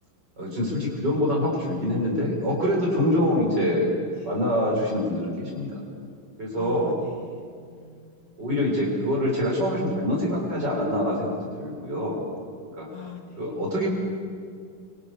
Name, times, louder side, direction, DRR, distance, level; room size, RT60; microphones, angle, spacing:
voice 1, 0.4-5.8 6.4-7.0 8.4-12.2 12.8-12.9 13.4-13.9, left 1 dB, 55° right, -2 dB, 7.9 m, -25 dB
voice 2, 6.5-8.5 12.9-13.6, left 6 dB, 80° left, 2 dB, 3.7 m, -44 dB
29.5 x 25.5 x 6.8 m, 2.2 s
omnidirectional pair, 2.3 m